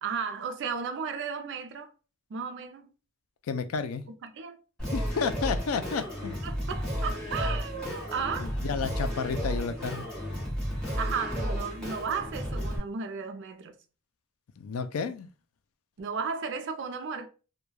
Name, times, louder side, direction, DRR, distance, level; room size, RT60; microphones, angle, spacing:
voice 1, 0.0-1.9 2.3-2.9 4.2-4.6 6.4-8.5 11.0-13.8 16.0-17.3, right 5 dB, 60° right, 0.4 m, -34 dB
voice 2, 3.5-4.1 4.9-6.3 8.4-10.1 14.6-15.3, left 5 dB, 85° left, 0.4 m, -31 dB
Singing, 4.8-12.8, equal, 5° left, 1.0 m, -33 dB
2.2 x 2.2 x 3.1 m
head